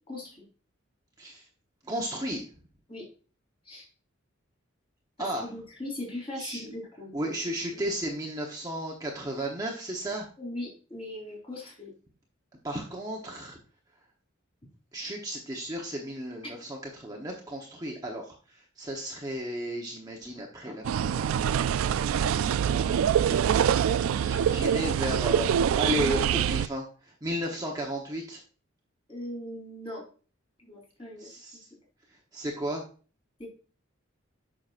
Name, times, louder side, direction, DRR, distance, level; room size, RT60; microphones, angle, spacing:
voice 1, 0.1-0.4 2.9-3.1 3.7-3.8 5.2-7.4 7.7-7.8 10.4-11.9 23.3-23.6 29.1-30.0 30.6-31.3 33.4-33.5, left 1 dB, 25° left, -3 dB, 4.0 m, -39 dB
voice 2, 1.8-2.5 5.2-5.5 6.4-6.8 7.1-10.3 12.6-13.6 14.9-28.4 31.2-31.7 32.3-32.8, equal, 20° right, -1 dB, 1.0 m, -34 dB
sound 1, 20.8-26.7, right 8 dB, 80° right, 0.3 m, -25 dB
9.3 x 6.1 x 2.5 m, 0.38 s
head